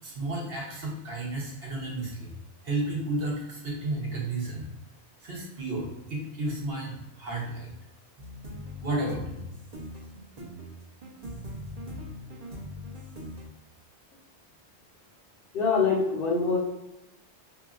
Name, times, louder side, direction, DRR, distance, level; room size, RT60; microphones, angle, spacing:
voice 1, 0.0-2.3 2.6-4.7 5.2-7.7 8.8-9.4, right 2 dB, 60° right, -3 dB, 1.1 m, -32 dB
sound 1, 8.2-13.5, left 1 dB, 40° right, 0.8 m, -41 dB
voice 2, 15.5-16.6, left 4 dB, 60° left, -2 dB, 0.8 m, -24 dB
3.9 x 2.9 x 2.4 m, 0.88 s
omnidirectional pair, 1.1 m